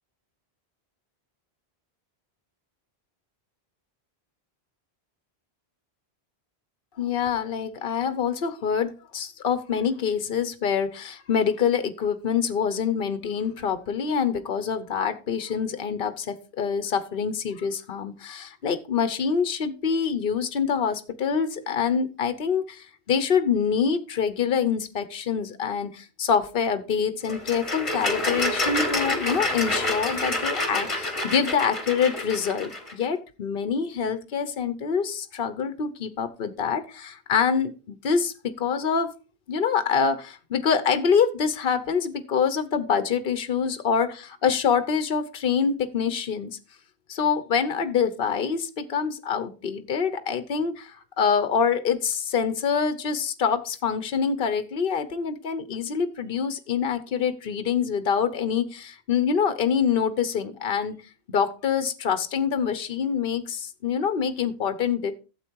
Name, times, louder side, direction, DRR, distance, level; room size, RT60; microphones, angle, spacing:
voice 1, 7.0-39.1 39.5-46.6 47.1-61.0 61.3-65.1, left 6 dB, 60° left, 11 dB, 1.1 m, -25 dB
sound 1, 27.2-32.9, left 1 dB, 30° left, 1.7 m, -28 dB
12.5 x 7.9 x 4.6 m, 0.33 s
omnidirectional pair, 1.1 m